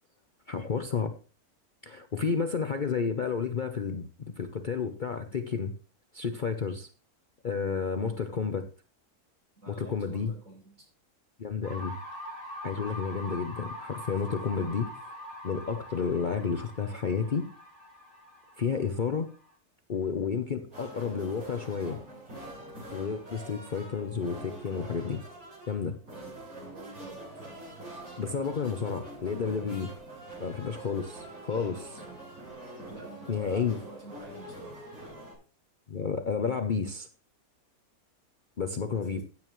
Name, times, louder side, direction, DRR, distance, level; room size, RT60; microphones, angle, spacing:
voice 1, 0.5-1.1 1.8-4.1 4.4-5.7 6.1-6.9 7.4-8.7 9.7-10.3 11.4-12.0 12.6-14.9 15.4-17.4 18.6-19.3 19.9-22.0 22.9-25.2 25.7-26.0 28.2-29.9 30.4-31.9 33.3-33.8 35.9-37.1 38.6-39.2, left 5 dB, 45° left, 7 dB, 0.7 m, -31 dB
voice 2, 7.9-8.2 9.6-10.9 26.1-27.3 31.5-32.1 32.9-34.8 38.9-39.2, right 2 dB, 60° right, -3 dB, 7.6 m, -49 dB
sound 1, 11.6-19.5, equal, 35° right, 5.3 m, -43 dB
sound 2, 20.7-35.3, right 1 dB, 85° right, 8.4 m, -45 dB
15.5 x 8.9 x 3.1 m, 0.37 s
omnidirectional pair, 1.5 m